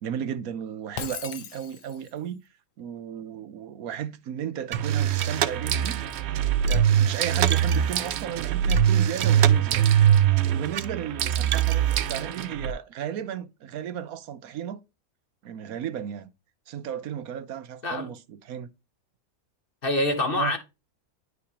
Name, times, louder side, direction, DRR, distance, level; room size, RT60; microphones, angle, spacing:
voice 1, 0.0-2.4 2.8-6.0 6.6-9.9 10.5-14.8 15.4-16.3 16.7-18.7 20.3-20.5, right 9 dB, 80° right, 1.2 m, -34 dB
Shatter, 1.0-2.2, left 9 dB, 70° left, 1.1 m, -38 dB
sound 1, 4.7-12.7, right 9 dB, 60° right, 0.7 m, -22 dB
voice 2, 19.8-20.6, left 1 dB, 40° left, 1.2 m, -25 dB
9.9 x 4.8 x 2.8 m
omnidirectional pair, 1.5 m